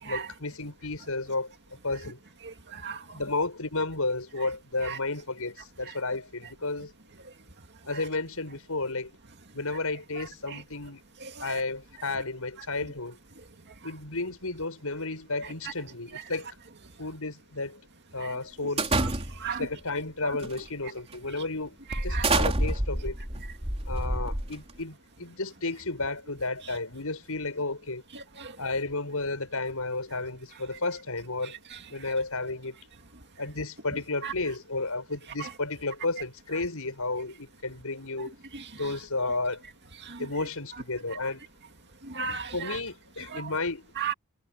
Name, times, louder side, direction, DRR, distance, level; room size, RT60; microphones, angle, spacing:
voice 1, 0.0-1.5 1.8-2.2 3.1-6.9 7.9-9.1 9.5-11.0 11.4-13.2 13.8-16.6 17.0-17.8 18.1-18.9 19.5-21.8 22.0-23.2 23.9-28.0 28.6-31.6 31.9-32.8 33.4-38.3 38.7-39.6 40.2-41.5 42.5-43.9, left 3 dB, 75° left, 7.3 m, -32 dB
voice 2, 2.4-3.2 4.9-5.0 11.2-11.5 19.0-19.1 19.4-19.7 22.1-22.3 28.4-28.5 34.2-34.3 40.0-40.2 42.0-42.8 43.3-43.4 44.0-44.1, right 6 dB, 50° right, 2.4 m, -35 dB
sound 1, 18.8-19.6 20.4-20.7 21.1-21.2 21.9-24.8, right 2 dB, 30° right, 3.6 m, -28 dB
head